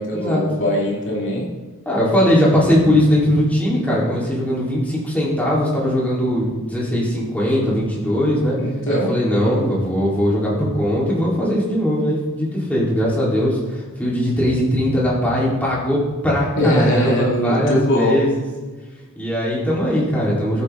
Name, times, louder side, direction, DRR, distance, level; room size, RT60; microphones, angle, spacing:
voice 1, 0.0-1.5 8.6-9.2 13.4-13.5 16.6-18.2, equal, 60° left, -2 dB, 2.5 m, -21 dB
voice 2, 1.9-8.6 8.9-18.4 19.2-20.6, equal, 5° left, -7 dB, 4.4 m, -20 dB
21.5 x 8.4 x 4.0 m, 1.3 s
head